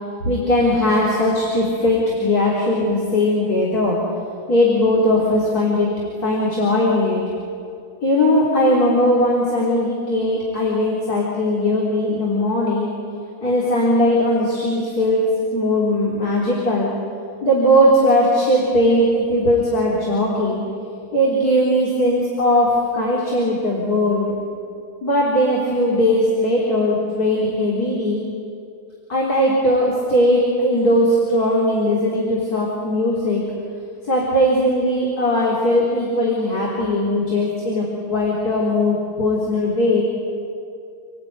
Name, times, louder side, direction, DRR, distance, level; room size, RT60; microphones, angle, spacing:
voice 1, 0.2-4.0 4.5-5.9 6.2-7.2 8.0-12.9 13.4-15.2 15.5-16.9 17.4-20.6 21.1-24.3 25.0-28.2 29.1-33.4 34.0-40.1, left 1 dB, 50° left, -4 dB, 4.4 m, -19 dB
28.0 x 19.0 x 9.5 m, 2.4 s
omnidirectional pair, 2.1 m